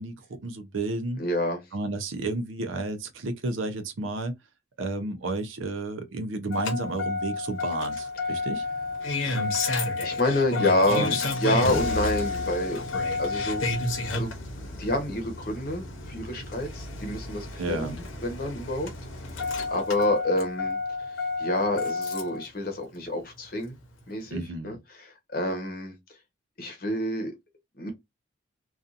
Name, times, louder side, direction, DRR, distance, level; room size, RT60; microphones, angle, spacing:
voice 1, 0.0-1.2 1.7-4.3 4.8-8.7 10.9-11.2 11.6-11.8 17.6-18.0 24.3-24.8, right 2 dB, 85° right, 0.5 m, -32 dB
voice 2, 1.2-1.6 9.2-9.5 10.0-12.8 13.2-14.3 14.8-18.9 19.3-20.8 21.4-23.7 24.1-26.0 26.6-27.3 27.8-27.9, left 1 dB, 45° left, 0.8 m, -28 dB
Engine starting, 6.5-22.4 23.7-23.8, left 3 dB, 85° left, 0.8 m, -31 dB
2.6 x 2.4 x 2.4 m
head